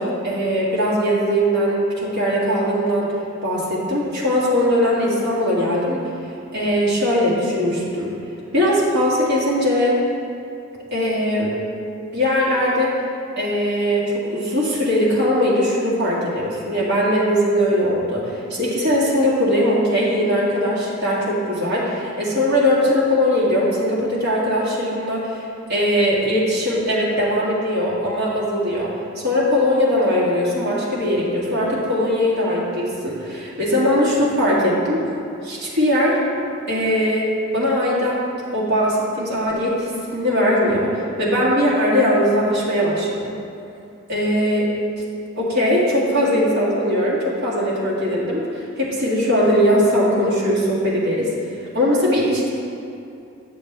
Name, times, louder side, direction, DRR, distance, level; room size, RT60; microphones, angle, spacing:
voice 1, 0.0-3.1 3.4-6.0 6.5-8.1 8.5-10.0 10.9-11.5 12.1-12.9 13.4-25.4 25.7-35.0 35.4-36.2 36.7-38.2 38.5-40.9 41.2-43.3 44.1-44.7 45.4-51.3 51.7-52.5, equal, 55° right, -6 dB, 2.0 m, -20 dB
9.1 x 6.8 x 3.4 m, 2.6 s
head